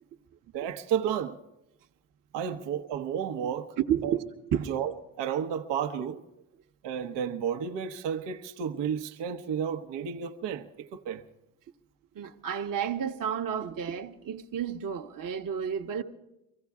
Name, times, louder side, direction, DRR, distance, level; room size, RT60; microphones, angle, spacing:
voice 1, 0.5-1.4 2.3-3.7 4.0-4.2 4.7-6.2 6.8-11.2, right 8 dB, 70° right, 1.1 m, -32 dB
voice 2, 3.9-4.7 12.1-16.0, right 8 dB, 45° right, 1.2 m, -31 dB
24.0 x 15.0 x 3.6 m
supercardioid pair, 65°, 44 cm